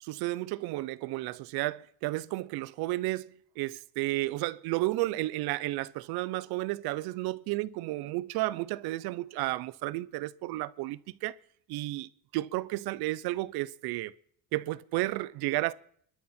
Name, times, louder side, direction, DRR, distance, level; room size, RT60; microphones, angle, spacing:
voice 1, 0.0-11.3 11.7-14.1 14.5-15.7, right 18 dB, 85° right, 0.7 m, -32 dB
26.0 x 12.5 x 4.4 m
cardioid pair, 175°, 37 cm